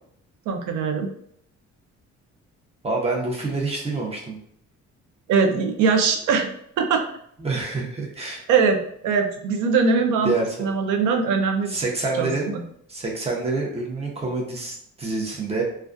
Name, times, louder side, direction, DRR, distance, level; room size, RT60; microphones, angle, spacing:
voice 1, 0.5-1.1 5.3-6.5 6.8-7.0 8.5-10.3 10.6-11.8 12.2-12.6, right 5 dB, 85° right, 4 dB, 0.5 m, -21 dB
voice 2, 2.8-4.4 7.4-8.4 10.2-10.7 11.7-12.5 12.9-15.6, right 3 dB, 20° right, -1 dB, 0.7 m, -27 dB
2.2 x 2.2 x 2.5 m, 0.68 s
cardioid pair, 90°, 30 cm